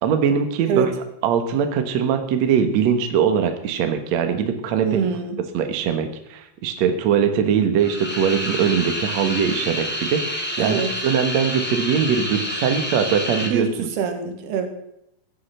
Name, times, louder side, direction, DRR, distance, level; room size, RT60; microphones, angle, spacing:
voice 1, 0.0-0.9 1.2-5.0 5.5-13.9, right 7 dB, 55° right, 7 dB, 2.2 m, -21 dB
voice 2, 4.8-5.4 10.6-10.9 13.5-14.7, right 7 dB, 90° right, 7 dB, 3.7 m, -25 dB
sound 1, 7.8-13.5, left 1 dB, 5° left, 1.3 m, -28 dB
15.5 x 10.5 x 5.6 m, 0.79 s
omnidirectional pair, 4.4 m